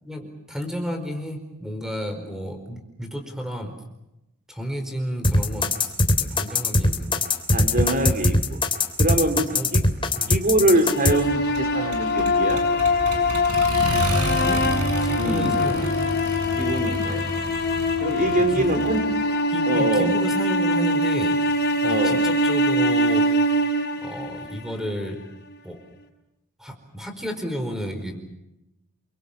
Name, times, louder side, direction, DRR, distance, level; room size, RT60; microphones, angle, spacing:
voice 1, 0.0-3.7 4.5-7.3 9.3-9.7 10.2-10.3 14.1-14.6 15.0-16.0 18.5-18.8 19.5-21.3 21.8-23.2 24.0-25.2 25.6-25.8 26.6-28.1, equal, ahead, 6 dB, 4.7 m, -32 dB
sound 1, 5.2-11.1, left 2 dB, 25° left, 3.0 m, -20 dB
voice 2, 7.5-8.4 9.0-9.8 10.3-12.6 15.2-15.5 16.6-17.3 18.0-19.0 19.7-20.1 21.8-22.3, right 1 dB, 40° right, 8 dB, 4.0 m, -23 dB
Accelerating revving vroom, 10.7-19.0, right 1 dB, 85° right, 6.8 m, -30 dB
sound 2, 10.8-24.9, left 1 dB, 50° left, 5.0 m, -23 dB
29.0 x 24.0 x 7.3 m, 0.91 s
head